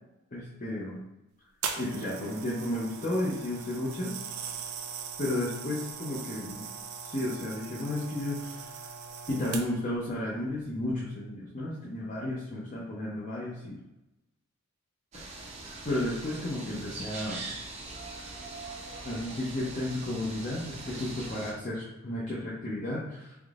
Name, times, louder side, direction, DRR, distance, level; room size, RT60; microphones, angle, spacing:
voice 1, 0.3-1.0 1.8-4.2 5.2-6.7 7.0-8.9 9.3-13.8 15.8-17.4 19.0-23.4, left 1 dB, 35° left, -6 dB, 0.6 m, -33 dB
sound 1, 1.6-9.9 10.7-10.9, right 6 dB, 90° right, 0.5 m, -40 dB
sound 2, 15.1-21.5, right 2 dB, 30° right, 0.6 m, -42 dB
3.8 x 3.5 x 2.4 m, 0.92 s
head